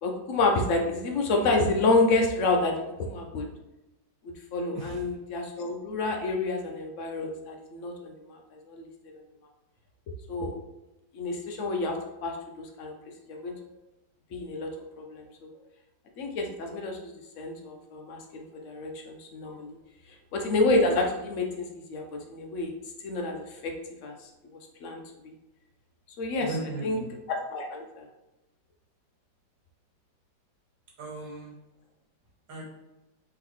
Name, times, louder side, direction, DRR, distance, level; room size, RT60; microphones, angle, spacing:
voice 1, 0.0-2.7 3.0-3.5 4.5-8.4 8.7-8.8 10.3-10.5 11.1-12.0 12.2-12.9 13.3-13.6 14.3-14.7 15.0-15.5 16.2-19.7 20.3-22.7 23.0-23.7 24.0-24.1 24.8-25.0 25.2-25.3 26.2-26.5 26.8-27.0 27.5-28.0, left 2 dB, 75° left, 3 dB, 0.7 m, -28 dB
voice 2, 26.4-27.1 31.0-31.5 32.5-32.6, right 2 dB, 90° right, -2 dB, 1.8 m, -37 dB
3.8 x 3.4 x 3.1 m, 0.98 s
omnidirectional pair, 1.9 m